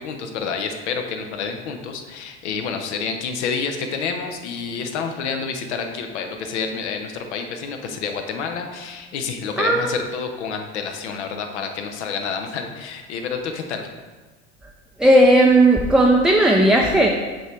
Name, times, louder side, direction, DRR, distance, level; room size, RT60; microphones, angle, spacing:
voice 1, 0.0-13.9, left 5 dB, 75° left, 5 dB, 0.8 m, -29 dB
voice 2, 9.6-9.9 15.0-17.1, right 1 dB, ahead, 0 dB, 0.4 m, -15 dB
6.4 x 4.6 x 3.2 m, 1.3 s
hypercardioid pair, 75°, 34 cm